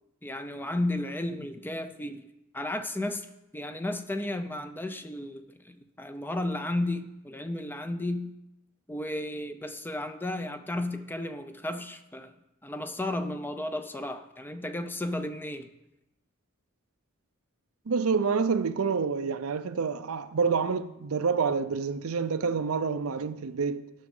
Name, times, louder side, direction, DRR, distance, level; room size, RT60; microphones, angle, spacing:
voice 1, 0.2-2.2 2.5-3.3 3.5-8.4 8.9-12.3 12.6-15.7, left 1 dB, 10° left, 0.5 m, -33 dB
voice 2, 17.9-23.9, right 5 dB, 85° right, 0.6 m, -28 dB
12.5 x 6.2 x 5.4 m
head